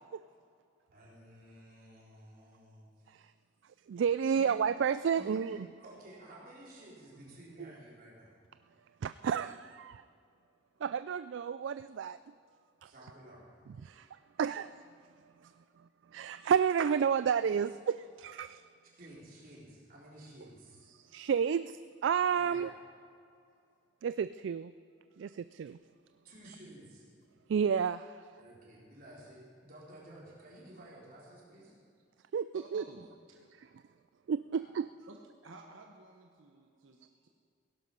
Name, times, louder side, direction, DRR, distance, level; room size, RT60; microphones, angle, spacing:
voice 1, 0.9-3.1 4.3-4.5 5.2-8.3 12.8-13.5 18.9-21.0 22.3-22.7 26.2-27.1 28.4-31.7, right 1 dB, 50° right, -5 dB, 4.2 m, -53 dB
voice 2, 3.9-5.7 7.6-7.7 9.0-10.0 10.8-12.2 12.8-12.9 13.8-14.1 14.4-14.7 15.4-15.5 16.1-18.6 20.9-22.7 24.0-24.7 25.2-25.8 27.5-28.3 32.3-32.8 34.3-34.8, right 7 dB, 65° right, 14 dB, 0.3 m, -31 dB
voice 3, 32.3-33.7 35.1-35.2 35.4-37.3, right 2 dB, 80° right, 2 dB, 1.1 m, -54 dB
17.0 x 11.5 x 5.6 m, 2.3 s
head